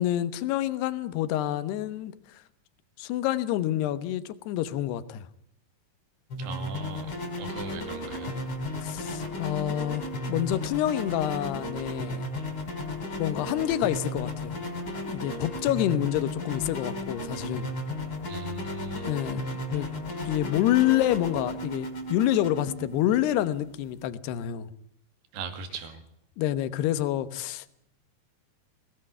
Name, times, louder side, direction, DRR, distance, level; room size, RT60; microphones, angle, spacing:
voice 1, 0.0-2.4 3.0-5.3 8.8-12.3 13.2-14.5 15.0-17.7 19.0-19.9 20.2-24.7 26.4-27.7, left 13 dB, 80° left, 3.1 m, -28 dB
sound 1, 6.3-24.0, left 1 dB, 35° left, 4.1 m, -35 dB
voice 2, 6.4-8.4 18.3-19.1 25.3-26.1, right 4 dB, 70° right, 4.4 m, -39 dB
23.5 x 18.0 x 9.8 m
omnidirectional pair, 4.8 m